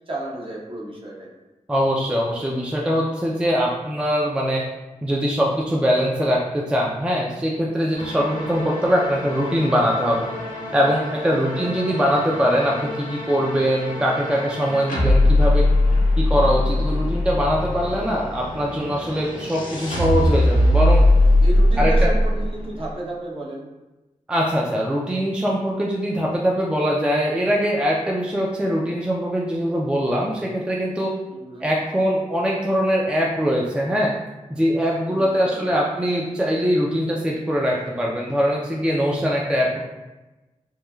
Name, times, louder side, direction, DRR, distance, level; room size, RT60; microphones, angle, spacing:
voice 1, 0.1-1.3 11.3-11.9 21.4-23.7 31.3-31.7 35.1-35.8, right 1 dB, 45° right, -4 dB, 0.7 m, -33 dB
voice 2, 1.7-4.6 5.0-10.3 10.7-15.7 16.2-21.1 21.8-22.1 24.3-31.1 31.6-34.1 34.5-39.8, equal, 10° right, -2 dB, 0.3 m, -22 dB
sound 1, 7.9-22.9, left 1 dB, 85° left, 0.6 m, -21 dB
3.0 x 2.2 x 2.2 m, 1.1 s
cardioid pair, 65°, 13 cm